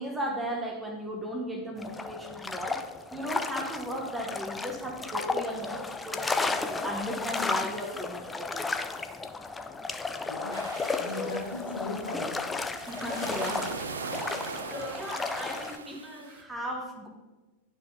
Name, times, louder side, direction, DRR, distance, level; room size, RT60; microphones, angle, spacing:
voice 1, 0.0-2.8 3.1-8.9 11.1-11.5 12.9-13.7 14.1-17.1, equal, 10° right, 2 dB, 1.0 m, -36 dB
sound 1, 1.8-15.8, left 3 dB, 10° left, 0.4 m, -34 dB
voice 2, 10.3-12.7, left 2 dB, 70° left, -1 dB, 1.6 m, -38 dB
sound 2, 10.5-16.4, right 4 dB, 70° right, 0.5 m, -41 dB
11.0 x 4.3 x 2.7 m, 1.2 s
figure-of-eight pair, 90°, 0 cm